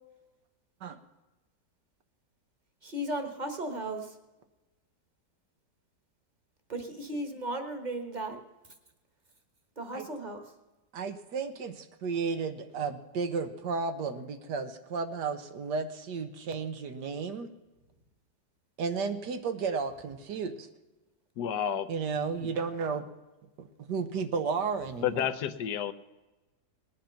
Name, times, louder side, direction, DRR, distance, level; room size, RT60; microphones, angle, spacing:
voice 1, 2.8-4.2 6.7-8.4 9.8-10.4, right 1 dB, 25° right, 5 dB, 1.4 m, -35 dB
voice 2, 10.9-17.5 18.8-20.7 21.9-23.0 23.6-25.3, right 5 dB, 75° right, 8 dB, 1.6 m, -33 dB
voice 3, 21.4-21.9 22.4-22.5 25.0-25.9, left 9 dB, 75° left, 10 dB, 1.3 m, -30 dB
19.5 x 9.2 x 5.8 m, 1.1 s
omnidirectional pair, 1.8 m